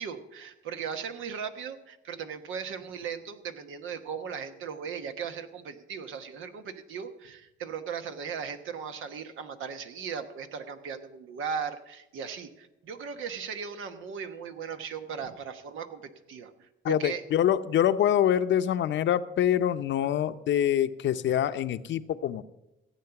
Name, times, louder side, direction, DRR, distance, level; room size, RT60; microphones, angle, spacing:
voice 1, 0.0-16.5 16.9-17.2, right 6 dB, 85° right, 8 dB, 1.2 m, -37 dB
voice 2, 16.8-22.4, left 10 dB, 70° left, 12 dB, 0.7 m, -25 dB
15.5 x 8.4 x 5.9 m, 0.94 s
cardioid pair, 90°, 20 cm